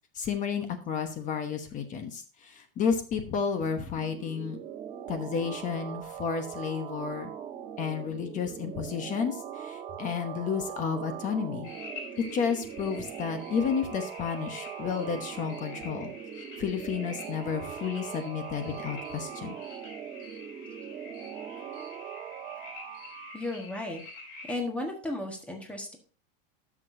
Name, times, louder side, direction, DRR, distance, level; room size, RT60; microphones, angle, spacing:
voice 1, 0.2-4.6 5.1-7.3 7.8-11.7 12.3-16.1 16.6-19.6, left 6 dB, 25° left, 7 dB, 1.0 m, -31 dB
sound 1, 3.5-23.4, right 9 dB, 30° right, 1.4 m, -41 dB
sound 2, 11.6-24.6, left 3 dB, 65° left, 4.0 m, -47 dB
voice 2, 23.3-24.0 24.5-26.0, left 2 dB, 5° left, 2 dB, 1.5 m, -34 dB
12.0 x 6.1 x 2.7 m, 0.39 s
supercardioid pair, 150°, 29 cm